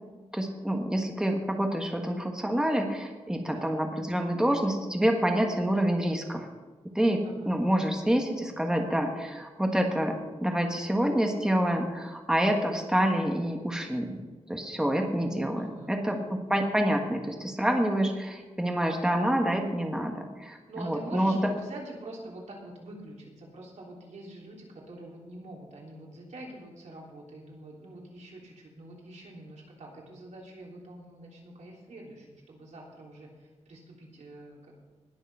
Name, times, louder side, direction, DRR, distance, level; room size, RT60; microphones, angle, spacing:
voice 1, 0.3-6.5 6.9-7.2 7.5-14.2 14.5-21.5, right 1 dB, 5° right, 2 dB, 1.4 m, -27 dB
voice 2, 7.2-7.6 15.6-16.3 20.7-34.7, right 1 dB, 85° right, -2 dB, 3.5 m, -45 dB
19.5 x 7.0 x 5.5 m, 1.3 s
wide cardioid pair, 150°, 12 cm